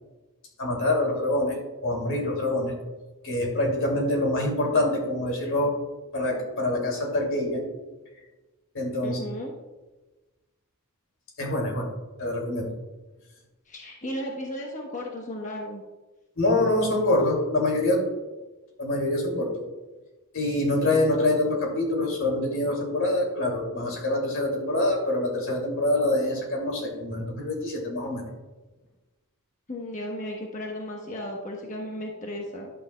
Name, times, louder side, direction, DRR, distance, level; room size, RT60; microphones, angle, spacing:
voice 1, 0.6-1.6 1.8-2.7 3.2-5.7 6.1-7.7 8.7-9.2 11.4-11.9 12.2-12.7 16.4-18.0 18.8-19.6 20.3-28.2, left 1 dB, 65° left, 0 dB, 2.6 m, -25 dB
voice 2, 9.0-9.5 13.7-15.8 29.7-32.7, left 1 dB, 35° left, -1 dB, 1.1 m, -35 dB
11.0 x 8.7 x 2.3 m, 1.2 s
head